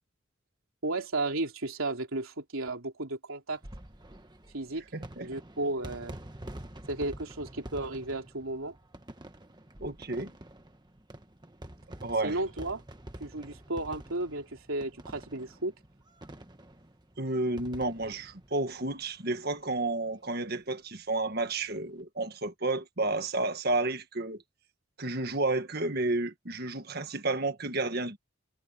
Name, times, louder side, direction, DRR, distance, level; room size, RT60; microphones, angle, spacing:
voice 1, 0.8-3.6 4.5-4.8 5.2-6.2 6.9-8.7 12.2-12.8 13.2-15.7, right 2 dB, 80° right, 3.2 m, -34 dB
sound 1, 3.5-19.5 19.8-19.9 20.1-20.2 21.5-21.8, right 1 dB, 20° right, 1.4 m, -47 dB
voice 2, 4.9-5.3 9.8-10.3 12.0-12.4 17.2-24.4 25.0-28.2, right 2 dB, 50° right, 1.7 m, -31 dB
head